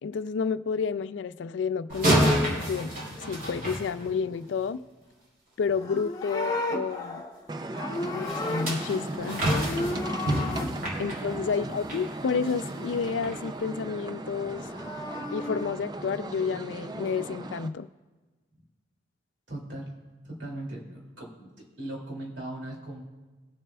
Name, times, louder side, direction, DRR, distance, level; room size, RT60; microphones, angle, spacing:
voice 1, 0.0-2.9 3.3-4.8 5.6-7.2 8.1-9.8 11.0-14.7 15.3-17.9, left 5 dB, 80° left, 14 dB, 0.4 m, -30 dB
sound 1, 1.9-4.5 8.3-12.0 12.5-12.7 13.2-13.3, equal, 50° right, 3.3 m, -28 dB
Livestock farm animals working animals, 5.7-9.1 9.4-10.7 14.5-15.6, left 2 dB, 20° left, 0.9 m, -34 dB
sound 2, 7.5-17.7, right 2 dB, 20° right, 0.4 m, -37 dB
voice 2, 19.5-19.9 20.2-23.0, right 1 dB, 85° right, -2 dB, 2.6 m, -39 dB
21.0 x 7.4 x 2.3 m, 1.3 s
head